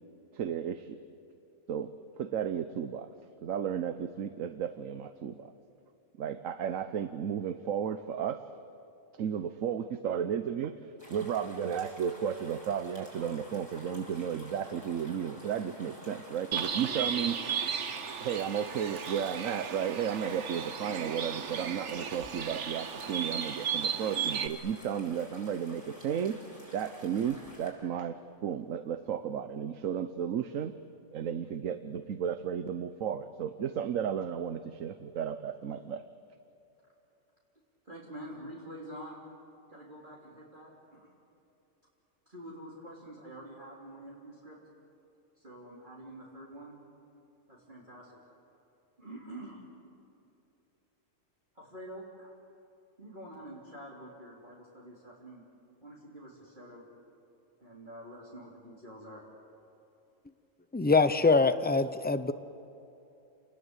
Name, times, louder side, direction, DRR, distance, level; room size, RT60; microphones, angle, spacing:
voice 1, 0.3-1.0 1.7-3.1 3.4-5.5 6.2-8.5 9.1-17.4 18.2-26.4 26.7-30.7 31.1-36.1, right 8 dB, 80° right, 10 dB, 1.2 m, -34 dB
sound 1, 11.0-27.7, equal, 15° right, 6.0 m, -51 dB
Bird, 16.5-24.5, right 7 dB, 60° right, 1.3 m, -35 dB
voice 2, 37.9-39.2 39.7-41.1 42.3-44.6 45.4-46.8 47.5-48.1 49.0-49.6 51.6-52.3 53.0-55.4 55.8-56.8 57.6-59.2, right 1 dB, 35° right, -5 dB, 3.6 m, -47 dB
voice 3, 60.7-62.3, left 4 dB, 10° left, 11 dB, 0.6 m, -24 dB
29.5 x 20.0 x 8.1 m, 2.8 s
omnidirectional pair, 1.4 m